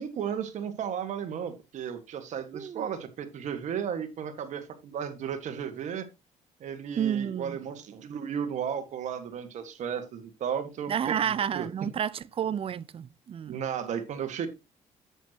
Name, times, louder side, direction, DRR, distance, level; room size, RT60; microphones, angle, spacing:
voice 1, 0.0-6.1 6.6-11.7 13.5-14.5, right 8 dB, 65° right, 1.8 m, -34 dB
voice 2, 2.5-2.9 7.0-7.6 10.9-13.6, right 9 dB, 45° right, 0.6 m, -30 dB
10.0 x 8.2 x 3.0 m
cardioid pair, 105°, 13 cm